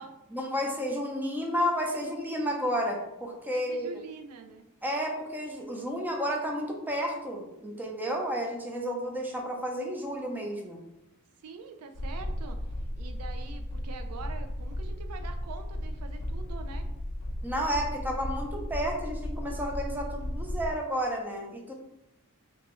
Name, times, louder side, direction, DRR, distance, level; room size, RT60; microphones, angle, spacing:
voice 1, 0.3-4.0 4.8-10.8 17.4-21.7, equal, 10° right, 0 dB, 0.5 m, -31 dB
voice 2, 3.5-4.7 11.4-12.6 13.0-16.9, right 5 dB, 85° right, 6 dB, 0.4 m, -44 dB
sound 1, 11.9-20.7, left 1 dB, 85° left, 0.6 m, -35 dB
3.4 x 3.0 x 3.0 m, 0.91 s
head